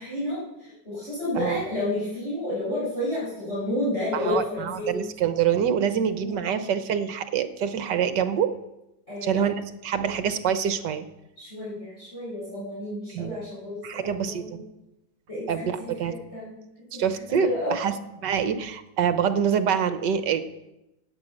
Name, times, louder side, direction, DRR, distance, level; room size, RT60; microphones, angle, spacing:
voice 1, 0.0-5.0 6.0-6.6 9.1-9.4 9.9-10.1 11.4-14.6 15.3-16.6 16.9-17.7, left 1 dB, 35° left, -9 dB, 5.8 m, -31 dB
voice 2, 4.1-8.5 9.2-11.0 13.1-13.4 13.8-14.6 15.5-16.1 16.9-17.9 18.2-20.5, right 8 dB, 65° right, 11 dB, 1.5 m, -26 dB
16.5 x 8.8 x 6.3 m, 0.92 s
omnidirectional pair, 2.1 m